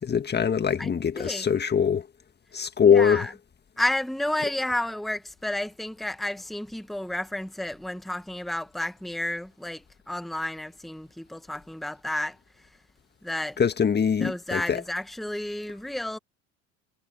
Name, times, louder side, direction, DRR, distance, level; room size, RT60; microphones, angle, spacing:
voice 1, 0.0-2.1 2.5-3.3 13.6-14.8, left 7 dB, 25° left, 1.6 m, -22 dB
voice 2, 0.8-1.5 2.8-3.3 3.8-12.4 13.2-13.6 14.2-16.2, left 1 dB, ahead, 1.5 m, -31 dB
hypercardioid pair, 85°, 38 cm